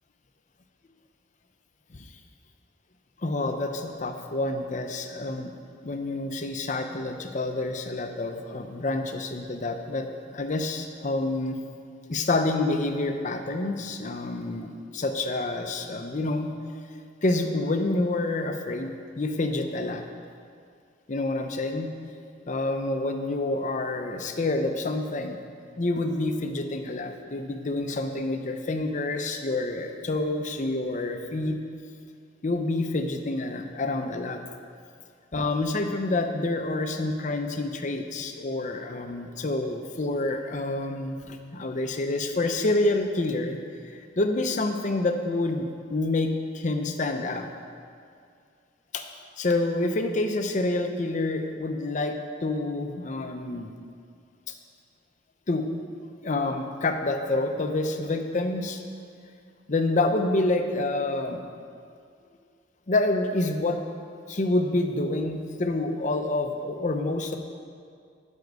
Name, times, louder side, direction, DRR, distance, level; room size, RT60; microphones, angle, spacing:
voice 1, 3.2-5.5 5.8-11.6 12.1-16.5 17.2-20.0 21.1-21.9 22.5-25.4 25.8-31.6 32.4-34.4 35.3-43.6 43.8-47.5 48.9-49.0 49.4-53.7 54.5-54.6 55.5-55.7 56.2-58.8 59.7-61.4 62.9-63.8 64.3-67.4, left 2 dB, 40° left, 6 dB, 0.6 m, -28 dB
12.0 x 5.3 x 4.7 m, 2.2 s
head